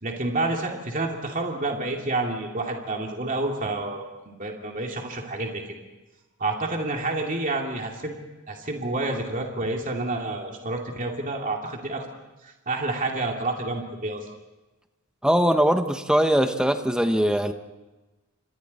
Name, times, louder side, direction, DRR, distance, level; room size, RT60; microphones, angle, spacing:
voice 1, 0.0-5.6 6.4-8.2 8.5-12.1 12.4-14.3, right 2 dB, 35° right, 1 dB, 2.5 m, -29 dB
voice 2, 15.2-17.5, equal, 5° right, 7 dB, 1.0 m, -21 dB
30.0 x 26.5 x 4.2 m, 1.1 s
head